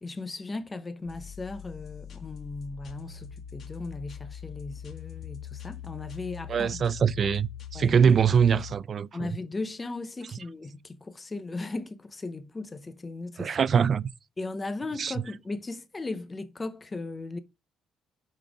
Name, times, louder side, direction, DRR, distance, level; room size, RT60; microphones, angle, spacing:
voice 1, 0.0-6.8 7.7-8.0 9.1-13.6 14.4-17.4, left 3 dB, 20° left, 0.7 m, -37 dB
sound 1, 1.1-8.7, left 9 dB, 45° left, 1.7 m, -42 dB
voice 2, 6.5-9.3 13.4-14.1 15.0-15.1, right 7 dB, 35° right, 0.3 m, -23 dB
6.1 x 5.2 x 5.0 m
cardioid pair, 160°, 0 cm